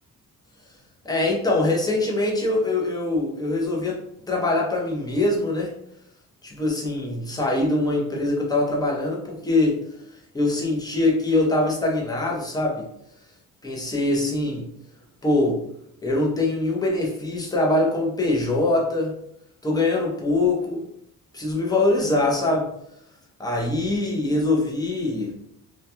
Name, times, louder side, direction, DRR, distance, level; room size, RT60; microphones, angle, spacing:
voice 1, 1.1-4.0 4.3-5.7 6.4-9.8 10.3-12.9 13.6-14.7 15.2-15.6 16.0-19.1 19.6-20.8 21.3-22.7 23.4-25.3, left 2 dB, 10° left, -2 dB, 0.6 m, -23 dB
2.3 x 2.2 x 2.8 m, 0.75 s
cardioid pair, 100°, 38 cm